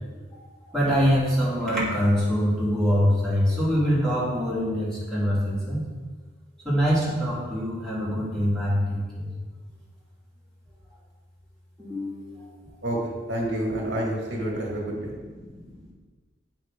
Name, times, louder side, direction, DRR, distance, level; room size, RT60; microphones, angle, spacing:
voice 1, 0.6-5.8 6.6-9.3 11.8-12.7 15.0-15.9, equal, 5° left, -9 dB, 2.3 m, -24 dB
voice 2, 12.8-15.1, right 1 dB, 65° right, -2 dB, 2.0 m, -28 dB
8.4 x 5.6 x 3.7 m, 1.4 s
head